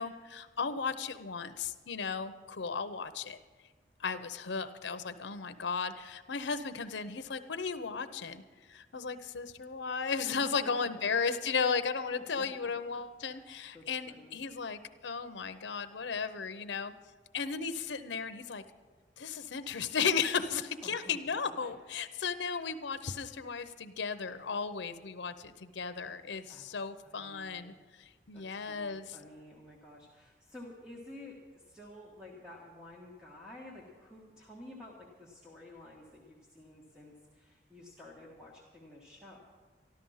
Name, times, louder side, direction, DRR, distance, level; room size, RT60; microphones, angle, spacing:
voice 1, 0.0-3.4 4.0-8.4 8.7-16.9 17.3-18.6 19.2-29.2, left 5 dB, 80° left, 11 dB, 0.7 m, -35 dB
voice 2, 10.4-10.7 11.0-11.1 12.2-12.7 13.3-13.5 13.7-14.4 20.8-21.1 21.6-21.7 26.5-26.7 27.0-27.7 28.3-39.4, left 1 dB, 5° right, -3 dB, 1.4 m, -51 dB
13.5 x 12.5 x 5.6 m, 1.4 s
head